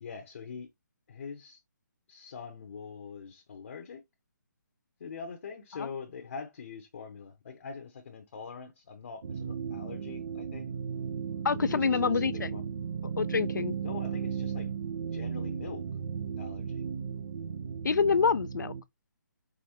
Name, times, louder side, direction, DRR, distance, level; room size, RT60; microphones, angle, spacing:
voice 1, 0.0-0.7 1.1-1.6 2.1-4.0 5.0-10.7 11.5-12.7 13.8-14.7 15.0-15.8 16.4-16.8, left 5 dB, 50° left, 0.8 m, -43 dB
sound 1, 9.2-18.8, right 7 dB, 55° right, 0.6 m, -35 dB
voice 2, 11.4-12.6 13.0-13.7 17.8-18.7, left 5 dB, 90° left, 0.5 m, -27 dB
5.0 x 3.4 x 2.8 m
hypercardioid pair, 160°, 10 cm